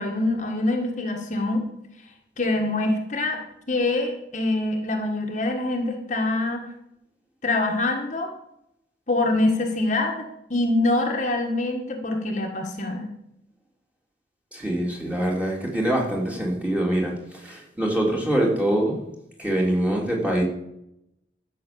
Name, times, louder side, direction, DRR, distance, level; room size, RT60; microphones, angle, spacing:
voice 1, 0.0-1.7 2.4-3.4 3.7-6.6 7.4-8.3 9.1-13.1, left 2 dB, 45° left, 2 dB, 1.6 m, -25 dB
voice 2, 14.5-19.0 19.4-20.4, right 1 dB, 10° right, -2 dB, 3.2 m, -24 dB
14.0 x 6.6 x 6.9 m, 0.80 s
head